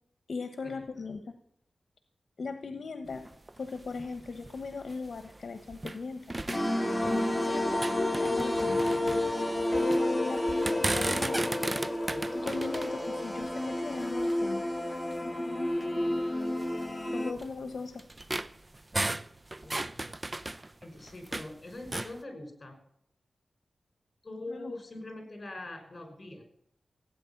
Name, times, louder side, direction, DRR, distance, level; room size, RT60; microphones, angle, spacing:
voice 1, 0.3-1.2 2.4-3.2 3.6-6.2 6.5-6.6 7.0-9.3 9.7-11.5 12.3-14.6 15.2-16.5 17.1-18.0 24.5-24.7, left 4 dB, 70° left, 7 dB, 1.1 m, -39 dB
sound 1, 3.1-6.0 6.3-7.4 7.7-10.1 10.5-14.5 15.1-15.2 15.7-15.8 16.6-21.5 21.8-22.2, right 2 dB, 25° right, 0.5 m, -36 dB
sound 2, 6.5-17.3, left 1 dB, 5° left, 1.8 m, -30 dB
voice 2, 19.6-20.5 20.8-22.8 24.2-26.4, left 2 dB, 35° left, 5 dB, 5.5 m, -43 dB
17.0 x 9.2 x 7.2 m, 0.69 s
wide cardioid pair, 90°, 0 cm